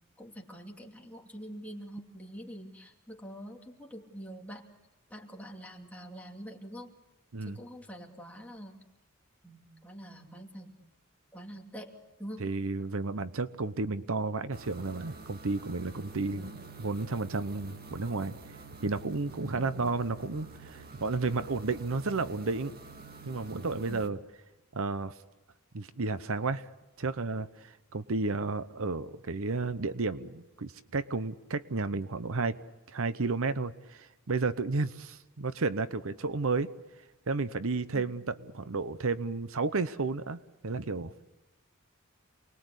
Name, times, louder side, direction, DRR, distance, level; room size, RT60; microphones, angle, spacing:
voice 1, 0.2-4.6 5.1-6.9 7.4-8.8 9.4-10.8 11.3-11.9 12.2-12.4 16.3-16.6 19.6-19.9, equal, 5° left, 1 dB, 2.8 m, -45 dB
voice 2, 12.4-18.3 18.8-22.7 23.3-24.2 24.7-25.1 25.7-26.7 27.0-32.6 32.9-36.7 37.3-41.1, right 3 dB, 70° right, 13 dB, 0.9 m, -32 dB
sound 1, 14.5-24.1, right 4 dB, 45° right, 1.8 m, -49 dB
28.5 x 21.0 x 8.2 m, 1.0 s
head